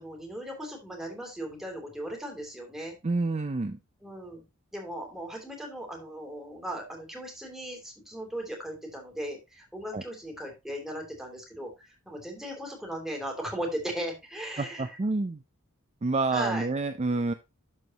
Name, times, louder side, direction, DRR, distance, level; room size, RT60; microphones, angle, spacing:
voice 1, 0.0-3.0 4.0-4.4 4.7-15.0 16.3-16.7, right 1 dB, ahead, 0 dB, 2.9 m, -37 dB
voice 2, 3.0-3.8 9.9-10.0 14.6-15.4 16.0-17.3, right 3 dB, 30° right, 9 dB, 0.5 m, -28 dB
13.0 x 4.7 x 2.9 m, 0.24 s
head